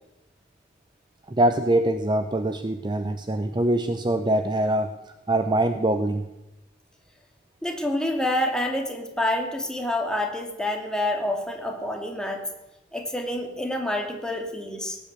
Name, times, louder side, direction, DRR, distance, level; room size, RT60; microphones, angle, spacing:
voice 1, 1.3-4.9 5.3-6.3, right 1 dB, 25° right, 8 dB, 0.7 m, -23 dB
voice 2, 7.6-12.4 12.9-15.0, left 1 dB, 5° left, 2 dB, 2.3 m, -27 dB
18.5 x 8.6 x 8.1 m, 0.95 s
head